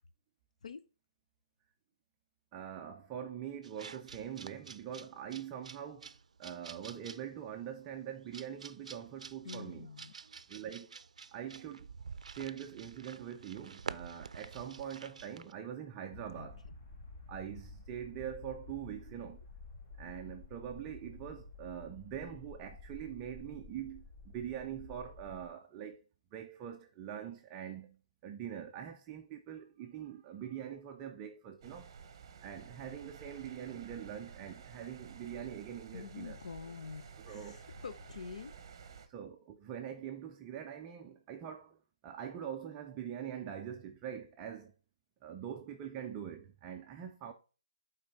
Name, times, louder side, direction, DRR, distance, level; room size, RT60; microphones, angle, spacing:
voice 1, 2.5-6.1 6.4-9.9 10.5-11.0 11.3-11.9 12.2-16.6 17.3-19.4 20.0-26.0 26.3-31.9 32.4-36.4 37.2-37.6 39.1-44.7 45.2-47.3, right 9 dB, 15° right, 0.4 m, -43 dB
sound 1, 3.6-15.5, right 5 dB, 70° right, 0.5 m, -49 dB
voice 2, 9.4-10.1 16.4-16.5 35.9-37.6 37.8-38.5, left 5 dB, 65° left, 0.6 m, -46 dB
sound 2, 16.1-25.5, left 3 dB, 40° left, 1.8 m, -52 dB
sound 3, 31.6-39.1, right 6 dB, 35° right, 0.8 m, -52 dB
8.8 x 3.9 x 4.1 m
hypercardioid pair, 170°, 4 cm